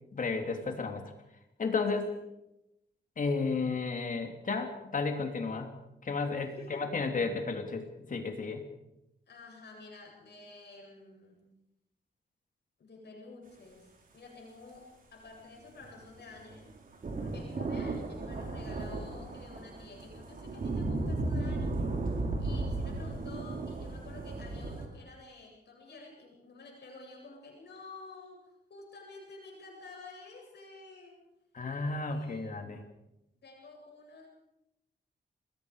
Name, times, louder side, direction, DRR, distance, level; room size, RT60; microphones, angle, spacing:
voice 1, 0.1-1.0 1.6-2.0 3.2-5.7 6.0-8.6 31.5-32.8, left 4 dB, 45° left, 5 dB, 3.1 m, -33 dB
voice 2, 6.4-6.8 9.3-11.5 12.8-16.7 17.2-31.2 32.1-32.7 33.3-34.3, left 3 dB, 65° left, 0 dB, 8.0 m, -50 dB
sound 1, 15.8-24.9, right 2 dB, 50° right, 3.9 m, -35 dB
29.0 x 21.0 x 5.1 m, 0.86 s
wide cardioid pair, 150°, 18 cm